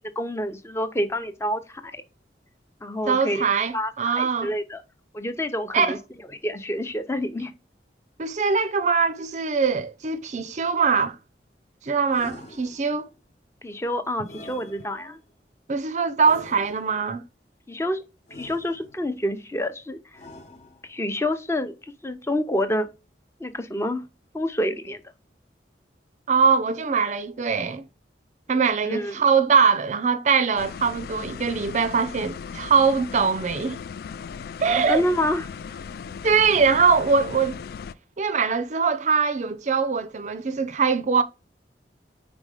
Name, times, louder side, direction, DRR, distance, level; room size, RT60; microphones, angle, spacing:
voice 1, 0.2-1.9 2.8-3.5 3.7-4.8 5.1-6.0 6.4-7.5 13.6-15.2 17.7-20.0 20.9-22.9 23.4-24.0 24.3-25.0 28.8-29.2 34.7-35.5, left 1 dB, 15° left, 0.7 m, -28 dB
voice 2, 3.1-4.5 5.7-6.0 8.2-11.2 11.8-13.1 15.7-17.2 26.3-27.8 28.5-33.8 34.6-35.0 36.2-37.6 38.2-41.2, right 5 dB, 40° right, 0.5 m, -22 dB
sound 1, 12.1-13.2 14.2-15.3 16.2-17.1 18.3-19.2 20.1-21.1, left 1 dB, 40° left, 1.1 m, -46 dB
sound 2, 30.6-37.9, left 6 dB, 60° left, 0.3 m, -37 dB
5.2 x 3.6 x 4.9 m
head